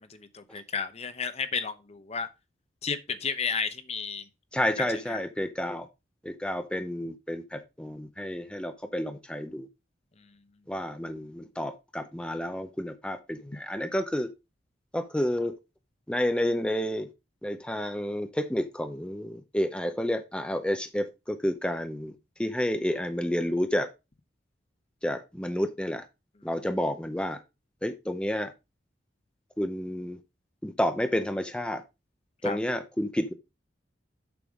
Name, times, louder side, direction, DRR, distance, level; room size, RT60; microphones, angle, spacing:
voice 1, 0.0-2.3 2.8-4.2 5.1-5.2 32.4-32.6, left 5 dB, 35° left, 0.8 m, -32 dB
voice 2, 4.5-5.9 6.2-9.7 10.7-14.3 14.9-15.5 16.1-17.1 17.4-22.1 22.4-23.9 25.0-26.1 26.4-27.4 27.8-28.5 29.6-30.2 30.6-31.8 32.4-33.3, left 1 dB, 5° left, 0.6 m, -30 dB
7.0 x 6.8 x 3.6 m
head